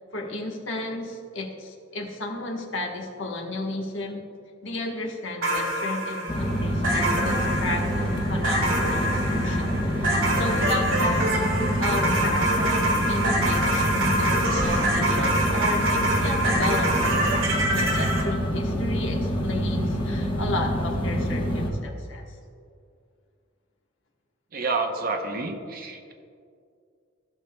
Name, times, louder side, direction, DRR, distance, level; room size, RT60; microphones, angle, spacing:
voice 1, 0.1-4.3 4.6-11.3 11.8-22.2, left 2 dB, 70° left, 1 dB, 1.2 m, -33 dB
sound 1, 5.4-18.2, right 1 dB, 90° right, 1.8 m, -25 dB
sound 2, 6.3-21.7, equal, 25° left, 1.0 m, -26 dB
voice 2, 24.5-26.1, right 3 dB, 45° right, 4 dB, 0.8 m, -29 dB
15.5 x 6.5 x 2.2 m, 2.3 s
head